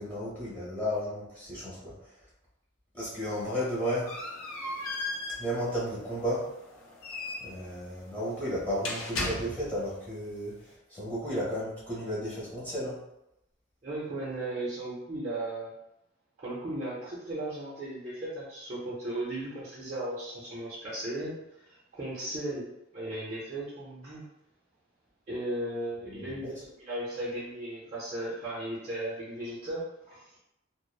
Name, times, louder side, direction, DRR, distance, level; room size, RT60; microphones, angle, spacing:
voice 1, 0.0-2.1 2.9-4.1 5.4-6.5 7.4-13.0 26.0-26.5, equal, 10° left, -10 dB, 1.0 m, -33 dB
sound 1, 3.3-9.9, left 2 dB, 75° left, 0.5 m, -38 dB
voice 2, 13.8-15.7 16.4-22.7 22.9-24.2 25.3-30.4, right 1 dB, 35° right, -9 dB, 0.6 m, -36 dB
2.9 x 2.0 x 2.3 m, 0.87 s
head